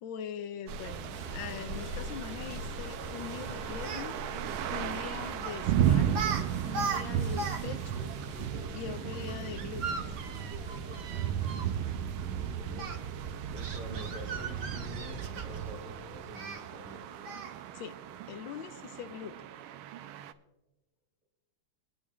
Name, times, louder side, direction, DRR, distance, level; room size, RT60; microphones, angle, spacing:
voice 1, 0.0-4.2 4.7-6.3 6.6-8.1 8.7-10.0 17.7-18.0 18.3-19.4, left 8 dB, 75° left, 1.3 m, -42 dB
sound 1, 0.7-20.3, right 9 dB, 85° right, 1.5 m, -35 dB
sound 2, 1.1-15.6, equal, 5° right, 4.6 m, -46 dB
Speech, 3.8-4.1 5.4-5.6 6.1-6.4 6.7-7.6 7.9-8.0 9.5-11.7 12.8-13.0 13.6-15.7 16.3-16.6 17.2-17.6, right 4 dB, 55° right, 1.6 m, -37 dB
voice 2, 12.2-12.8 13.5-17.3, equal, 35° right, 3.6 m, -46 dB
21.5 x 10.5 x 2.4 m
omnidirectional pair, 2.3 m